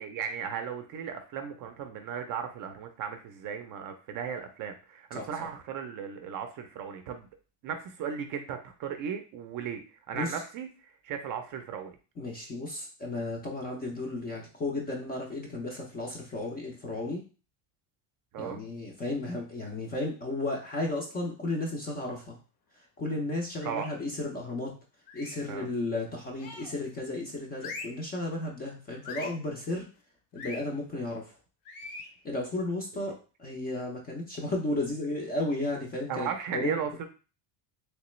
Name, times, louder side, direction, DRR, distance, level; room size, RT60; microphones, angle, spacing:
voice 1, 0.0-7.3 7.6-12.0 18.3-18.6 23.6-23.9 25.5-25.7 33.1-33.2 36.1-37.1, right 7 dB, 45° right, 6 dB, 0.5 m, -36 dB
voice 2, 12.2-17.2 18.4-22.4 23.0-24.7 25.1-29.9 30.3-31.3 32.2-36.8, left 2 dB, 20° left, 0 dB, 0.4 m, -34 dB
sound 1, 23.6-24.0 25.1-25.5 26.4-26.9 27.6-28.1 29.0-29.4 30.4-30.6 31.7-32.1, left 3 dB, 50° left, 0.7 m, -42 dB
3.3 x 2.9 x 3.0 m, 0.34 s
cardioid pair, 155°, 48 cm